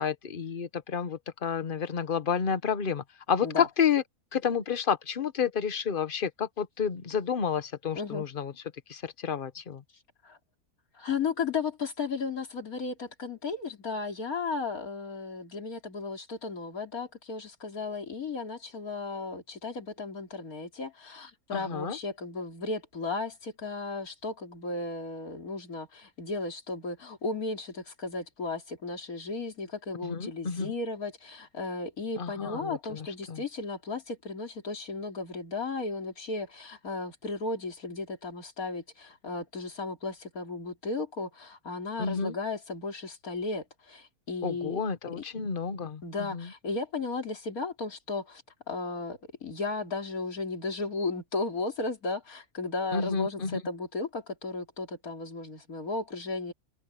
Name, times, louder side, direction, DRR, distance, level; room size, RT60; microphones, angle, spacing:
voice 1, 0.0-4.0 4.3-8.5 8.9-9.8 21.5-22.0 30.0-30.7 32.2-33.4 42.0-42.3 44.4-46.5 52.9-53.6, left 7 dB, 40° left, 1.1 m, -30 dB
voice 2, 10.9-44.8 45.2-45.3 46.0-48.4 48.7-56.5, left 3 dB, 70° left, 3.6 m, -35 dB
open air
omnidirectional pair, 1.6 m